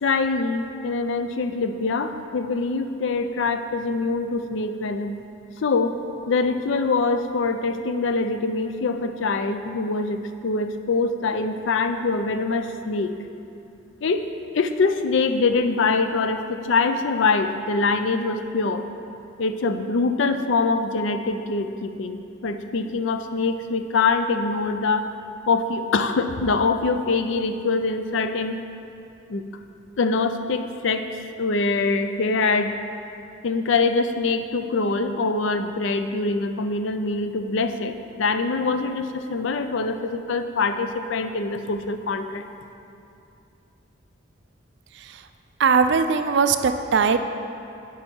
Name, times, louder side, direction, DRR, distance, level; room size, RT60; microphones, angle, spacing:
voice 1, 0.0-5.2 5.6-6.0 6.3-13.1 14.0-14.2 14.5-18.9 19.4-25.1 25.5-28.6 29.3-29.4 30.0-32.8 33.4-42.4, left 3 dB, 65° left, 8 dB, 0.4 m, -24 dB
voice 2, 45.6-47.2, right 5 dB, 55° right, 9 dB, 0.4 m, -19 dB
10.5 x 4.7 x 4.5 m, 2.7 s
head